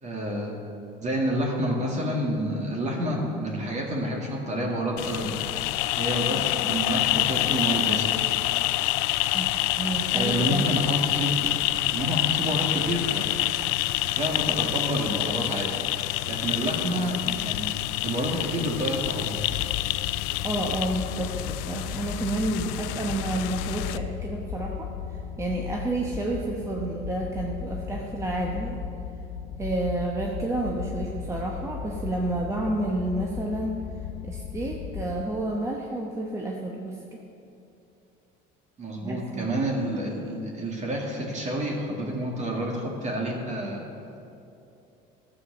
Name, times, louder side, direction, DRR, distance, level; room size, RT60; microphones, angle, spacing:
voice 1, 0.0-0.6 1.0-5.4 6.0-8.2 10.1-13.4 14.0-15.8 16.3-17.7 18.0-19.5 38.8-43.9, equal, 35° right, 0 dB, 2.4 m, -29 dB
sound 1, 5.0-24.0, left 17 dB, 90° left, 0.4 m, -27 dB
voice 2, 9.3-10.6 20.4-24.9 25.4-28.8 29.6-33.8 34.2-37.2 39.0-39.5, right 2 dB, 15° right, -1 dB, 1.0 m, -30 dB
sound 2, 19.4-35.2, left 7 dB, 65° left, 0.9 m, -36 dB
13.0 x 7.3 x 6.9 m, 2.9 s
cardioid pair, 120°, 20 cm